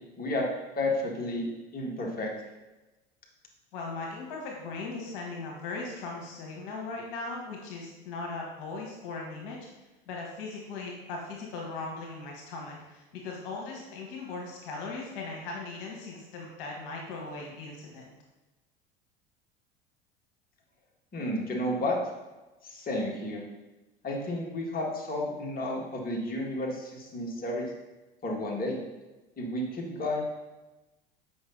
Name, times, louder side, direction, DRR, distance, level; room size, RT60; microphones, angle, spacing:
voice 1, 0.2-0.5 0.8-1.5 1.7-2.3 21.1-22.0 22.6-23.4 24.0-27.7 28.2-28.8 29.4-30.2, left 1 dB, 30° left, -1 dB, 1.8 m, -31 dB
voice 2, 3.7-9.6 10.1-18.1, left 3 dB, 65° left, -1 dB, 1.5 m, -38 dB
7.9 x 5.4 x 3.9 m, 1.1 s
hypercardioid pair, 75°, 29 cm